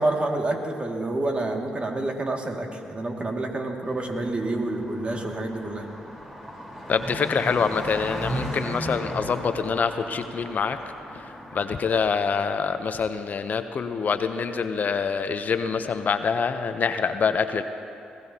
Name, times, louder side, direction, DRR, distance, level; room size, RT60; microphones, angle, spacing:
voice 1, 0.0-5.9, right 2 dB, 30° right, 2 dB, 2.1 m, -28 dB
Car passing by, 3.8-12.4, equal, 15° right, 3.9 m, -36 dB
voice 2, 6.9-10.8 11.1-11.2 11.5-17.6, left 5 dB, 50° left, 9 dB, 0.7 m, -25 dB
20.5 x 16.5 x 2.8 m, 2.6 s
supercardioid pair, 55°, 4 cm